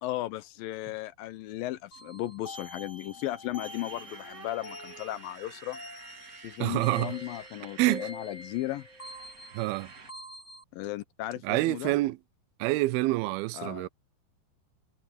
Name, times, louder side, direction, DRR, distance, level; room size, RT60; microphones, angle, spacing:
voice 1, 0.0-5.8 6.4-8.9 10.7-11.9 13.5-13.9, left 15 dB, 75° left, 2.3 m, -36 dB
sound 1, 1.9-10.6, left 1 dB, 35° left, 1.3 m, -45 dB
Motorcycle, 3.6-10.1, right 5 dB, 45° right, 1.1 m, -51 dB
voice 2, 6.6-7.1 7.8-8.1 9.5-9.9 11.4-12.2 12.6-13.9, right 19 dB, 80° right, 2.4 m, -27 dB
omnidirectional pair, 4.5 m